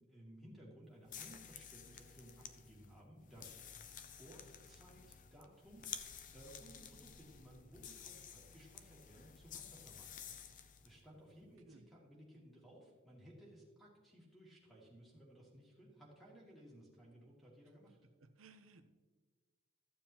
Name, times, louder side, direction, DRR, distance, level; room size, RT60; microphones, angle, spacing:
voice 1, 0.0-5.9 6.3-18.0, right 1 dB, ahead, -6 dB, 2.3 m, -59 dB
sound 1, 1.0-10.9, left 8 dB, 40° left, 0.5 m, -52 dB
sound 2, 3.8-11.5, equal, 70° left, 2.9 m, -70 dB
voice 2, 18.2-18.9, right 3 dB, 85° right, 8 dB, 0.7 m, -61 dB
13.5 x 7.2 x 2.9 m, 1.4 s
head